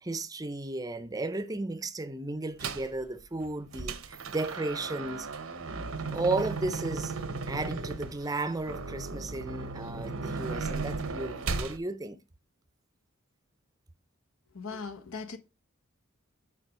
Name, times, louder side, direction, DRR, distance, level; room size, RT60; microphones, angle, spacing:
voice 1, 0.0-5.3 6.1-7.1 7.5-12.2, right 2 dB, 15° right, 0.6 m, -34 dB
sound 1, 2.6-2.9 3.4-11.8, right 4 dB, 75° right, 0.9 m, -36 dB
voice 2, 14.5-15.4, left 4 dB, 75° left, 1.2 m, -39 dB
6.7 x 5.2 x 4.6 m
head